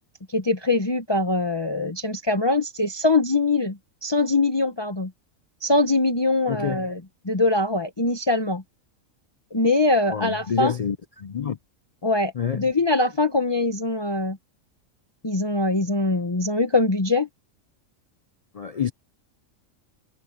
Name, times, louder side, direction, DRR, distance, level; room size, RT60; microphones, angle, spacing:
voice 1, 0.3-5.1 5.6-7.0 7.2-8.6 9.5-10.7 12.0-14.4 15.2-17.3, left 2 dB, 20° left, 1.0 m, -22 dB
voice 2, 6.5-6.9 10.1-11.6 12.3-12.7 18.5-18.9, left 7 dB, 75° left, 0.3 m, -28 dB
omnidirectional pair, 1.4 m